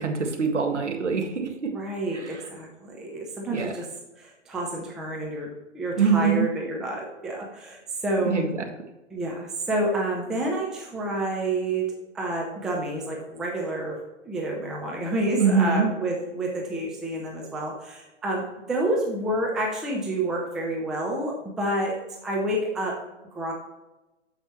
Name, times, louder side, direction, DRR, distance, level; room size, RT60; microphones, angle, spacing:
voice 1, 0.0-1.7 2.1-2.4 3.5-3.7 6.0-6.5 8.3-8.5 15.4-15.9, right 5 dB, 70° right, 4 dB, 1.7 m, -23 dB
voice 2, 1.7-3.9 4.2-8.4 9.1-14.0 14.2-23.0 23.3-23.5, right 1 dB, ahead, -1 dB, 0.5 m, -29 dB
9.1 x 7.1 x 3.0 m, 1.1 s
figure-of-eight pair, 125°, 36 cm